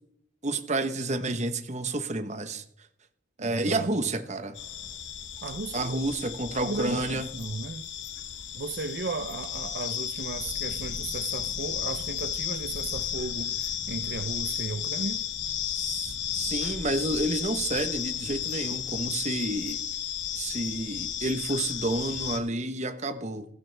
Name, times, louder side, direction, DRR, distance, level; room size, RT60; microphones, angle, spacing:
voice 1, 0.4-2.6 3.4-4.6 5.7-7.3 15.7-19.8 20.3-23.5, right 2 dB, 35° right, 1.1 m, -30 dB
voice 2, 3.4-3.9 5.4-6.0 6.5-7.9 8.5-15.2, right 3 dB, 55° right, 0.7 m, -35 dB
sound 1, 4.5-22.4, left 9 dB, 70° left, 1.1 m, -33 dB
16.0 x 15.0 x 3.4 m
head